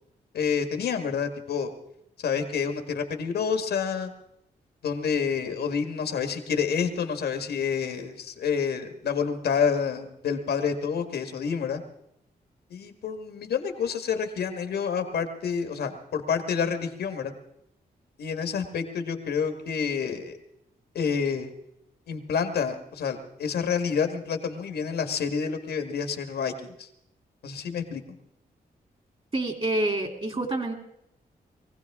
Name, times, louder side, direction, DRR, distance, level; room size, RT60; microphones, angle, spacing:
voice 1, 0.3-1.7 2.2-4.1 4.8-11.8 12.7-17.3 18.2-20.4 20.9-21.5 22.1-26.9 27.4-28.0, left 6 dB, 90° left, 7 dB, 1.6 m, -28 dB
voice 2, 29.3-30.7, right 2 dB, 35° right, 4 dB, 2.9 m, -27 dB
22.0 x 15.5 x 3.6 m, 0.77 s
cardioid pair, 75°, 16 cm